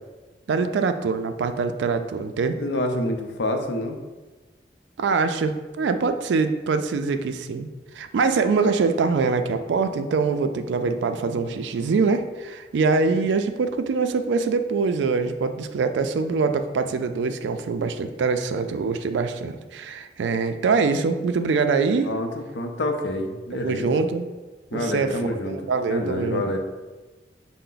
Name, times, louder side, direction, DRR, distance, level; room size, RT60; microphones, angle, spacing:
voice 1, 0.5-2.6 5.0-7.7 8.0-22.1 23.6-24.3 24.7-25.2 25.5-26.6, right 4 dB, 90° right, 9 dB, 0.3 m, -24 dB
voice 2, 2.6-4.0 22.0-24.0 24.7-25.6 25.9-26.6, left 1 dB, 90° left, 4 dB, 0.5 m, -27 dB
5.5 x 2.1 x 3.8 m, 1.3 s
head